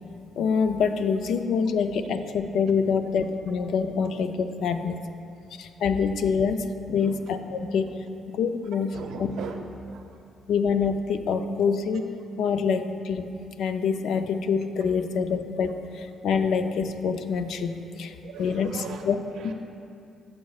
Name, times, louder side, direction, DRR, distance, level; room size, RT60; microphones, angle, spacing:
voice 1, 0.4-5.0 5.5-8.9 9.2-9.3 10.5-19.2, left 6 dB, 75° left, 8 dB, 0.4 m, -26 dB
voice 2, 8.9-10.2 17.7-19.0 19.3-19.5, right 5 dB, 75° right, 4 dB, 0.6 m, -40 dB
14.5 x 5.4 x 2.4 m, 2.5 s
cardioid pair, 90°, 0 cm